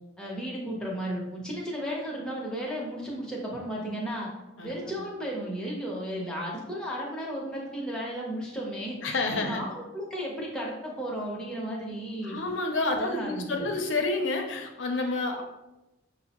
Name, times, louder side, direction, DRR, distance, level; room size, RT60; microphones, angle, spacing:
voice 1, 0.2-4.3 4.6-12.4 13.0-13.7, equal, 5° left, -4 dB, 0.8 m, -34 dB
voice 2, 4.6-5.1 9.0-9.7 12.2-15.4, left 2 dB, 70° left, 4 dB, 0.6 m, -29 dB
6.0 x 2.0 x 2.9 m, 0.96 s
head